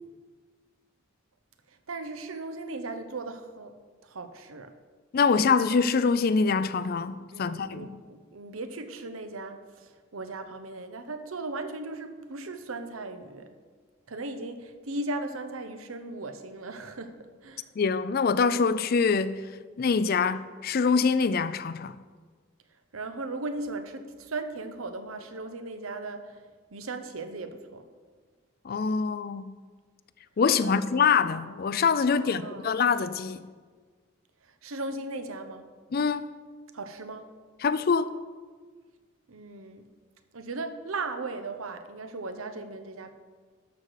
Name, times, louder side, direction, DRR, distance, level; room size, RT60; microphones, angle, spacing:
voice 1, 1.9-3.7 4.0-4.7 7.1-13.6 14.1-17.7 22.9-26.4 26.7-27.8 30.6-31.1 32.1-32.7 34.6-35.7 36.7-37.3 39.3-39.9 40.3-43.1, right 2 dB, 90° right, 0.9 m, -37 dB
voice 2, 5.1-7.9 17.8-19.4 19.8-22.0 28.6-29.5 30.4-33.4 35.9-36.2 37.6-38.1, left 5 dB, 45° left, 0.4 m, -24 dB
12.0 x 4.9 x 6.5 m
head